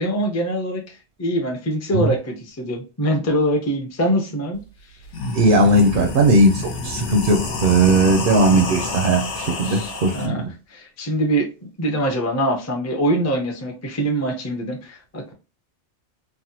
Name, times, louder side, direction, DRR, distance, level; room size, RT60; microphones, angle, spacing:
voice 1, 0.0-4.6 9.6-15.3, right 1 dB, 20° left, 0.4 m, -24 dB
sound 1, 4.5-4.6 5.0-10.3, left 3 dB, 80° left, 1.1 m, -29 dB
voice 2, 5.3-10.5, right 2 dB, 60° right, 0.6 m, -17 dB
3.4 x 2.1 x 2.8 m
omnidirectional pair, 1.2 m